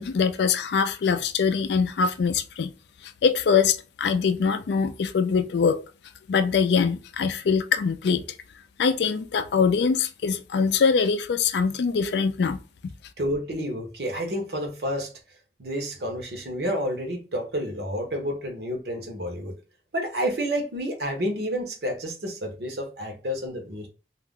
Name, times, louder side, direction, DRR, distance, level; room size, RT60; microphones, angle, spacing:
voice 1, 0.0-2.7 3.0-5.8 6.3-8.2 8.8-12.6, left 5 dB, 75° left, 0.3 m, -23 dB
voice 2, 13.2-15.1 15.6-19.5 19.9-23.9, equal, 65° right, 0.8 m, -30 dB
2.4 x 2.2 x 3.5 m
head